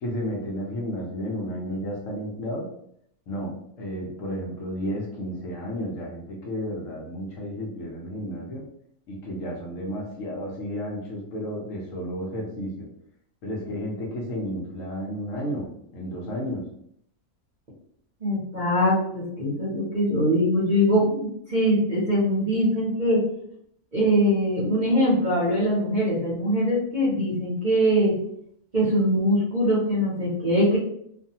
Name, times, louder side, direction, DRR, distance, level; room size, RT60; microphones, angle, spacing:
voice 1, 0.0-2.6 3.3-8.6 9.1-12.9 13.4-15.6 15.9-16.6, equal, 65° left, -2 dB, 1.1 m, -32 dB
voice 2, 18.2-23.2 23.9-28.1 28.7-30.8, equal, 40° right, -6 dB, 0.7 m, -22 dB
2.7 x 2.4 x 2.7 m, 0.70 s
omnidirectional pair, 1.5 m